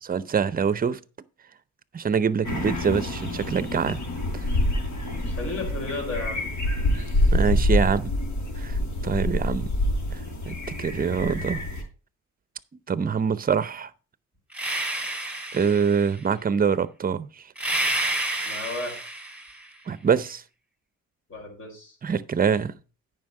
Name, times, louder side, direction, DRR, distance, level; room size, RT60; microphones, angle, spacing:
voice 1, 0.1-1.0 1.9-4.0 4.3-4.4 7.0-7.1 7.3-8.1 8.6-9.7 10.1-10.2 10.5-11.6 12.9-13.9 15.5-17.3 19.9-20.4 22.0-22.8, right 6 dB, 30° right, 0.7 m, -25 dB
sound 1, 2.4-11.8, left 1 dB, 75° left, 4.2 m, -26 dB
voice 2, 5.2-6.5 18.4-19.0 21.3-22.0, left 3 dB, 45° left, 4.7 m, -33 dB
sound 2, 14.5-16.2 17.6-19.6, right 1 dB, 5° right, 2.8 m, -29 dB
9.3 x 5.4 x 5.4 m
cardioid pair, 90°, 30 cm